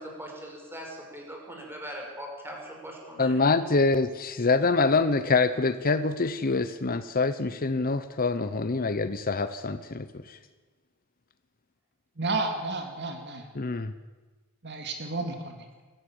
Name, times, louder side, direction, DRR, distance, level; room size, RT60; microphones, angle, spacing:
voice 1, 0.0-3.4, equal, 10° right, 5.5 m, -41 dB
voice 2, 3.2-10.4 13.5-13.9, left 3 dB, 40° left, 0.8 m, -25 dB
voice 3, 12.2-13.5 14.6-15.6, right 3 dB, 50° right, 2.5 m, -31 dB
22.5 x 14.5 x 8.9 m
head